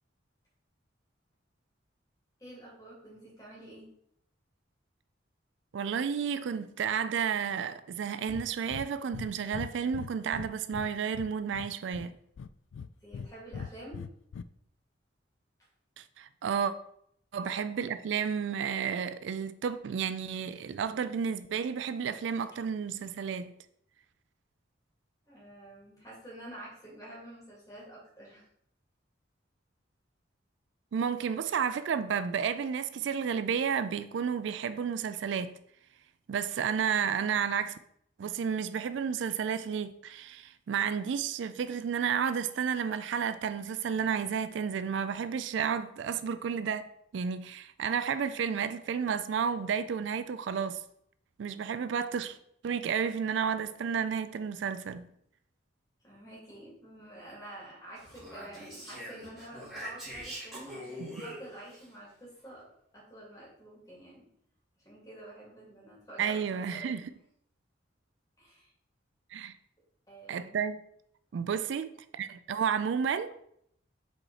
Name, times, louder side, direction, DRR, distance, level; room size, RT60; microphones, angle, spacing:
voice 1, 2.4-3.9 13.0-14.0 25.3-28.4 56.0-64.3 64.8-66.9 68.4-68.7 70.1-70.6, right 1 dB, 20° left, 2.6 m, -49 dB
voice 2, 5.7-12.2 16.0-16.7 17.3-23.5 30.9-35.5 36.3-37.8 38.2-50.8 51.4-52.4 52.6-55.1 61.0-61.2 66.2-67.0 69.3-69.5 70.3-70.8 71.3-71.9 72.2-73.3, right 7 dB, 70° right, 0.3 m, -31 dB
Breathing, 8.3-8.5 8.7-8.9 9.1-9.3 9.5-10.9 11.1-12.1 12.4-13.3 13.5-14.4, left 6 dB, 85° left, 0.3 m, -40 dB
Speech, 58.0-61.9, equal, 5° right, 2.3 m, -43 dB
5.2 x 4.2 x 4.7 m
head